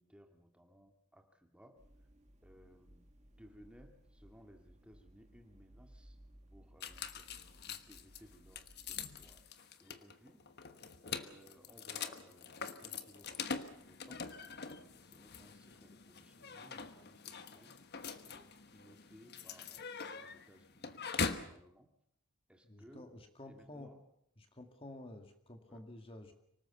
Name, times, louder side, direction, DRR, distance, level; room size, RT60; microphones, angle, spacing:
voice 1, 0.0-1.8 2.4-3.1 3.4-6.2 6.5-10.4 11.0-18.0 18.3-21.9 22.5-23.1 23.5-24.0 25.7-25.8, equal, 5° right, 4 dB, 2.0 m, -62 dB
sound 1, 1.8-9.4, equal, 30° right, 2.1 m, -61 dB
sound 2, 6.8-21.5, left 5 dB, 45° left, 1.3 m, -43 dB
voice 2, 22.6-24.0 24.4-26.3, left 1 dB, 25° left, 5 dB, 1.9 m, -51 dB
25.0 x 18.5 x 7.1 m, 0.74 s
head